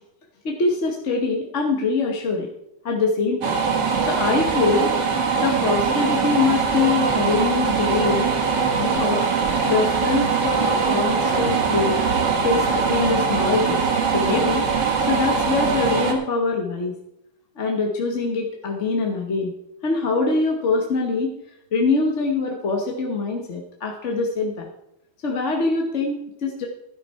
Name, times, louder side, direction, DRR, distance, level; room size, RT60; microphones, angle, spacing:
voice 1, 0.4-2.5 2.8-3.6 4.0-4.9 5.4-8.3 8.8-9.3 9.6-12.0 12.4-14.7 15.0-17.0 17.6-19.5 19.8-21.4 21.7-24.7 25.2-26.7, left 3 dB, 40° left, 1 dB, 1.3 m, -23 dB
sound 1, 3.4-16.1, right 5 dB, 65° right, 2.1 m, -22 dB
12.5 x 11.0 x 4.4 m, 0.82 s
omnidirectional pair, 2.1 m